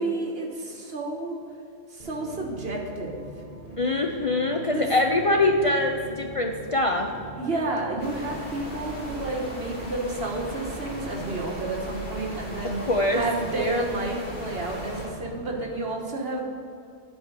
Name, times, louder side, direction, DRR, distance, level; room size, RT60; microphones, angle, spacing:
voice 1, 0.0-1.4 1.9-3.3 4.7-4.9 7.4-12.8 13.1-16.4, right 2 dB, 65° right, 0 dB, 1.5 m, -30 dB
sound 1, 2.0-15.8, equal, 35° right, 1.2 m, -42 dB
voice 2, 3.8-7.1 12.8-13.2, left 2 dB, 40° left, 3 dB, 0.5 m, -23 dB
sound 2, 8.0-15.1, right 1 dB, 75° left, 2.9 m, -38 dB
9.8 x 4.6 x 7.4 m, 2.6 s
omnidirectional pair, 1.1 m